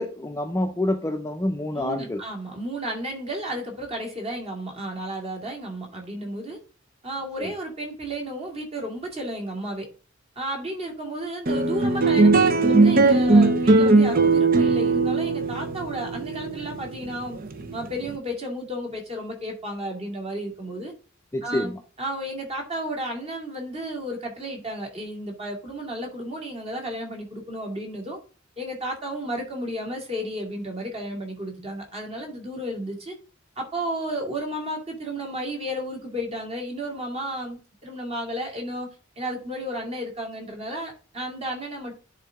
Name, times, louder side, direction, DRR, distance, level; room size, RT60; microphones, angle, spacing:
voice 1, 0.0-2.2 7.4-7.5 21.3-21.8, left 1 dB, 15° left, 6 dB, 0.6 m, -27 dB
voice 2, 1.8-6.6 7.0-9.9 10.4-17.4 17.7-20.9 21.4-21.7 22.0-28.2 28.6-33.1 33.6-41.9, right 1 dB, 30° right, 2 dB, 2.3 m, -33 dB
sound 1, 11.5-18.1, right 3 dB, 45° right, 0.8 m, -19 dB
10.0 x 3.8 x 3.5 m, 0.37 s
head